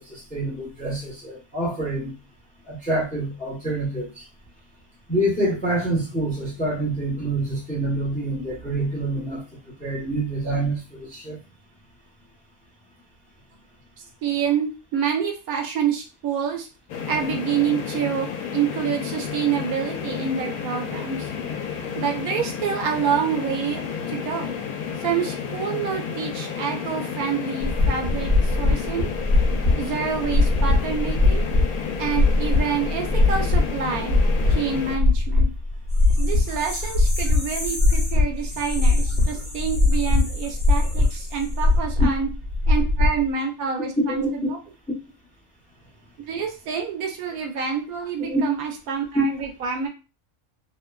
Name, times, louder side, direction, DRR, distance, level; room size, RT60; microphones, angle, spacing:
voice 1, 0.0-2.1 2.7-4.3 5.1-9.4 9.8-11.4 44.1-44.3 48.3-48.4 49.1-49.2, right 2 dB, 10° left, -4 dB, 0.6 m, -26 dB
voice 2, 14.2-16.7 17.1-21.3 22.0-23.8 24.1-24.5 25.0-29.1 29.7-31.5 32.0-34.2 34.5-35.5 36.2-42.3 42.7-44.2 44.5-44.6 46.3-49.9, right 7 dB, 80° right, 2 dB, 1.2 m, -27 dB
sound 1, 16.9-35.0, left 7 dB, 90° left, 1.1 m, -31 dB
sound 2, 27.6-43.2, left 2 dB, 55° right, 0.9 m, -20 dB
sound 3, 35.9-41.7, left 1 dB, 35° left, 1.1 m, -36 dB
2.9 x 2.2 x 2.2 m, 0.30 s
omnidirectional pair, 1.5 m